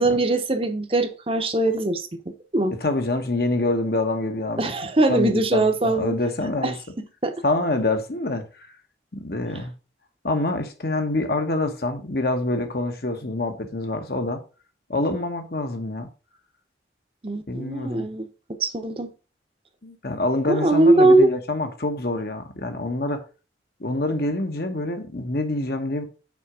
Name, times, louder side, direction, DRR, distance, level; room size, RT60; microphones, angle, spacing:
voice 1, 0.0-2.8 4.6-6.1 6.6-6.7 7.2-7.3 17.2-18.3 18.6-19.1 20.5-21.3, right 2 dB, 30° right, 0.8 m, -21 dB
voice 2, 2.8-4.7 5.1-6.7 7.4-8.5 9.1-9.7 10.2-14.4 14.9-16.1 17.5-18.1 19.8-23.2 23.8-26.0, left 2 dB, 55° left, 1.2 m, -26 dB
6.0 x 5.1 x 4.9 m
head